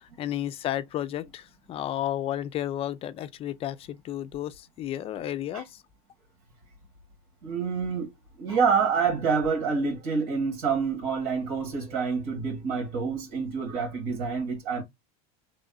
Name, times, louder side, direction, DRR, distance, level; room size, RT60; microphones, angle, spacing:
voice 1, 0.0-5.6, left 12 dB, 30° left, 0.4 m, -32 dB
voice 2, 7.4-8.1 8.4-14.8, right 5 dB, 85° right, 1.9 m, -27 dB
3.3 x 2.4 x 3.8 m
supercardioid pair, 135°, 19 cm